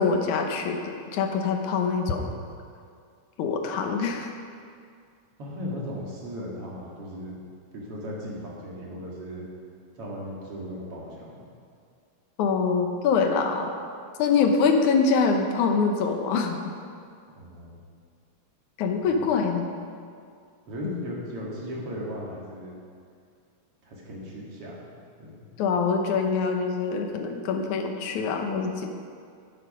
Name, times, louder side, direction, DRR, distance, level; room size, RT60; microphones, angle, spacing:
voice 1, 0.0-2.3 3.4-4.3 12.4-13.8 14.2-16.6 18.8-19.7 20.8-21.0 25.6-29.0, left 5 dB, 90° left, 4 dB, 2.5 m, -24 dB
voice 2, 5.4-7.4 7.7-9.4 9.9-11.5 17.4-17.8 19.0-19.2 20.7-22.8 23.8-24.9 25.2-25.4, equal, 50° right, -4 dB, 3.0 m, -37 dB
11.5 x 11.0 x 5.0 m, 2.2 s
omnidirectional pair, 3.4 m